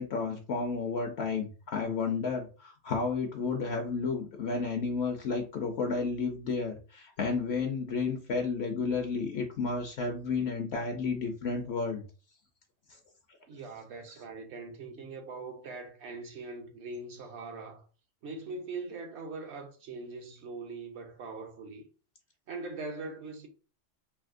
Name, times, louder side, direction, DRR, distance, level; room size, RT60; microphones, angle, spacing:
voice 1, 0.0-12.0, left 4 dB, 65° left, 0.8 m, -32 dB
voice 2, 13.5-17.9 18.2-21.9 22.5-23.5, right 3 dB, 65° right, 1.0 m, -41 dB
3.4 x 2.6 x 2.5 m
omnidirectional pair, 1.3 m